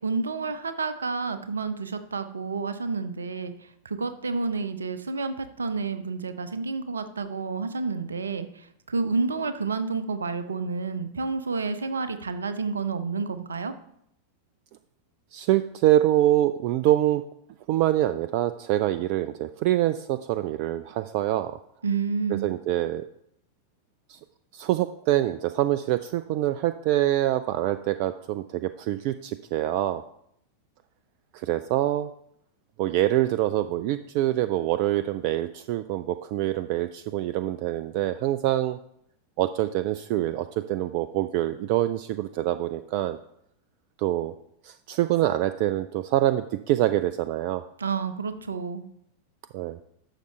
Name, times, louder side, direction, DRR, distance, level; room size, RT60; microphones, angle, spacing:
voice 1, 0.0-3.5 3.8-8.5 8.9-13.7 21.8-22.5 47.8-48.8, right 4 dB, 70° right, 11 dB, 0.7 m, -29 dB
voice 2, 15.3-17.2 17.7-21.6 22.3-23.0 24.1-24.2 24.5-30.0 31.3-32.1 32.8-38.8 39.4-43.2 44.0-44.3 44.6-47.6 49.5-49.8, right 14 dB, 45° right, 12 dB, 0.3 m, -25 dB
11.5 x 6.7 x 3.2 m, 0.72 s
figure-of-eight pair, 90°, 0 cm